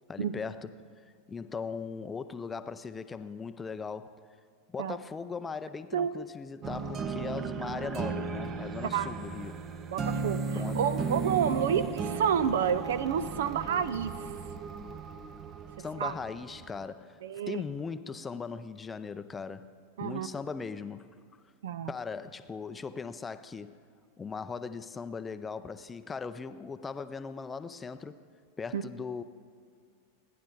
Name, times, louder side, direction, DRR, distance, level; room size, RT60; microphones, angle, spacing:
voice 1, 0.1-0.7 1.3-4.2 4.7-9.6 10.6-10.9 15.8-17.2 17.5-19.7 20.0-21.1 21.9-23.8 24.2-28.2 28.6-29.2, left 5 dB, 15° left, 0.5 m, -39 dB
sound 1, 6.6-16.8, right 5 dB, 30° right, 0.8 m, -36 dB
voice 2, 9.9-14.1 16.0-16.1 17.2-17.6 20.0-20.3 21.6-21.9 28.7-28.8, right 8 dB, 60° right, 0.6 m, -29 dB
28.5 x 10.5 x 3.8 m
figure-of-eight pair, 90°, 0 cm